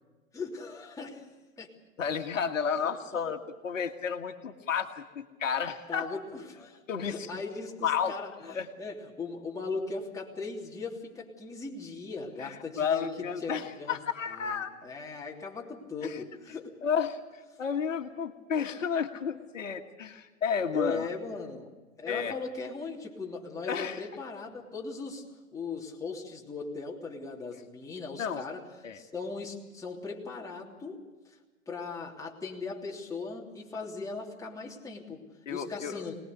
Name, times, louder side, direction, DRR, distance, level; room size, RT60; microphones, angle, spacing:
voice 1, 0.3-1.3 1.6-1.7 2.0-2.1 5.9-14.0 14.2-16.8 20.7-21.7 22.0-25.2 25.5-28.6 28.9-31.4 31.7-36.1, left 4 dB, 10° left, -3 dB, 3.2 m, -39 dB
voice 2, 2.0-6.2 6.9-7.4 7.8-8.7 12.4-14.7 16.0-16.2 16.8-21.1 22.1-22.4 23.6-24.1 28.2-28.4 28.8-29.0 35.4-36.1, left 7 dB, 65° left, 6 dB, 1.8 m, -32 dB
25.5 x 20.0 x 6.7 m, 1.3 s
figure-of-eight pair, 115°, 41 cm